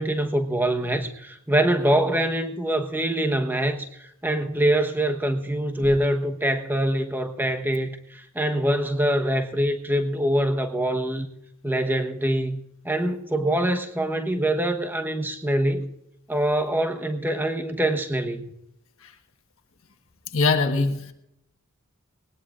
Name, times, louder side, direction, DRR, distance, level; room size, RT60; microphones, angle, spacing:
voice 1, 0.0-11.3 11.6-12.6 12.8-15.9 16.3-18.5, right 1 dB, 10° right, 1.1 m, -24 dB
voice 2, 20.3-21.1, left 3 dB, 70° left, 1.4 m, -22 dB
19.5 x 19.5 x 2.5 m
head